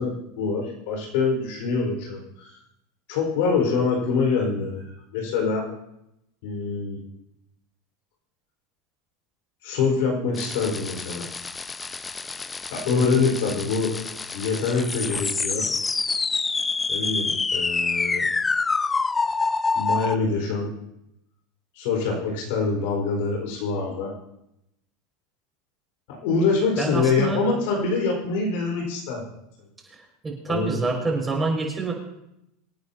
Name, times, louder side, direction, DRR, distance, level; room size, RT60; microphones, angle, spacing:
voice 1, 0.0-2.5 3.1-5.7 6.4-7.0 9.6-11.3 12.7-13.9 14.3-15.7 16.9-18.3 19.7-20.7 21.7-24.1 26.1-29.2 30.5-30.8, left 4 dB, 70° left, 0 dB, 4.7 m, -25 dB
sound 1, 10.4-20.1, left 4 dB, 15° left, 0.5 m, -27 dB
voice 2, 26.8-27.4 29.9-31.9, right 3 dB, 15° right, -1 dB, 5.6 m, -27 dB
26.0 x 9.5 x 2.9 m, 0.82 s
hypercardioid pair, 110°, 0 cm